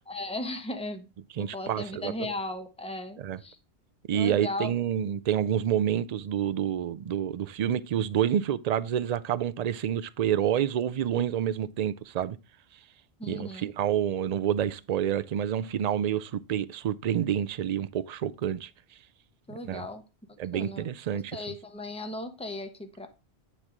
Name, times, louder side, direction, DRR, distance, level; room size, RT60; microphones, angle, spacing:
voice 1, 0.1-1.1 1.4-3.6 4.1-4.7 13.2-13.7 19.5-20.0 20.5-23.1, left 2 dB, 5° left, 1.0 m, -37 dB
voice 2, 1.4-2.3 3.2-3.4 4.1-12.4 13.2-18.7 19.6-19.9 20.4-21.4, right 9 dB, 60° right, 0.4 m, -28 dB
9.8 x 3.4 x 5.9 m
omnidirectional pair, 1.1 m